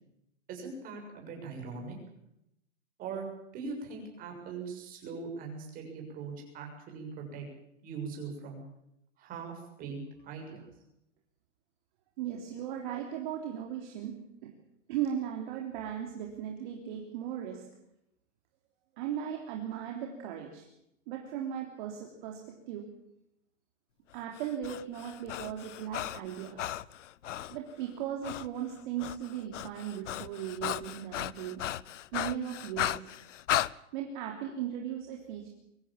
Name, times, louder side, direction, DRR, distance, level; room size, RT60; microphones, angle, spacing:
voice 1, 0.5-2.0 3.0-3.3 3.5-7.4 7.8-8.6 9.2-10.7, right 5 dB, 20° right, 2 dB, 6.9 m, -41 dB
voice 2, 12.2-14.5 14.9-17.6 19.0-20.6 21.1-22.8 24.1-26.7 27.5-31.6 32.1-33.1 33.9-35.5, right 9 dB, 40° right, 1 dB, 3.3 m, -37 dB
Breathing, 24.4-27.6 28.2-28.5 28.8-33.7, left 12 dB, 70° left, 0.8 m, -35 dB
23.5 x 16.0 x 8.8 m, 0.81 s
hypercardioid pair, 155°, 37 cm